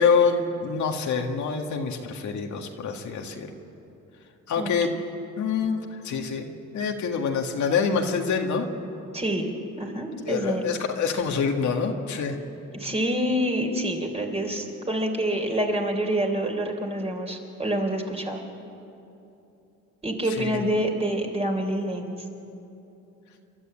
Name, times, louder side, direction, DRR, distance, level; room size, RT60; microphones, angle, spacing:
voice 1, 0.0-3.5 4.5-4.9 5.4-6.5 6.7-8.7 10.3-12.4 20.2-20.6, left 5 dB, 70° left, 2 dB, 1.9 m, -26 dB
voice 2, 9.1-9.5 9.8-10.6 12.7-18.4 20.0-22.1, right 1 dB, 20° right, 2 dB, 3.4 m, -27 dB
27.5 x 12.5 x 8.7 m, 2.9 s
cardioid pair, 90°, 30 cm